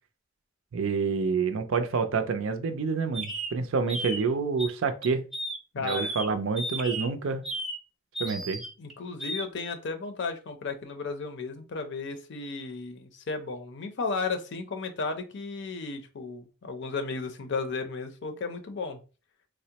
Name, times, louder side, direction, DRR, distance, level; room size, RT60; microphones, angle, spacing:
voice 1, 0.7-5.2 5.8-7.4 8.2-8.6, right 5 dB, 80° right, 0.5 m, -28 dB
sound 1, 3.1-3.5 3.9-4.2 4.6-4.7 5.0-5.6 5.9-6.3 6.6-7.1 7.4-7.8 8.1-8.9 9.2-9.4, right 1 dB, ahead, 0.6 m, -34 dB
voice 2, 5.7-6.1 8.8-19.0, left 4 dB, 60° left, 0.5 m, -34 dB
3.5 x 2.0 x 2.8 m
head